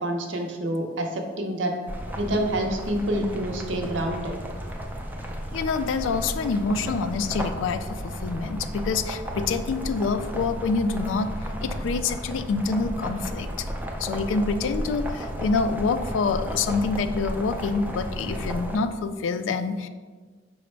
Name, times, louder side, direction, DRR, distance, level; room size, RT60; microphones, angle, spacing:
voice 1, 0.0-1.7 2.2-4.3, right 1 dB, 75° right, 3 dB, 0.6 m, -27 dB
sound 1, 1.9-18.8, equal, 10° right, 0.4 m, -33 dB
voice 2, 5.5-11.3 11.6-13.7 14.0-19.9, left 4 dB, 80° left, 10 dB, 0.3 m, -26 dB
4.9 x 2.1 x 4.4 m, 1.4 s
head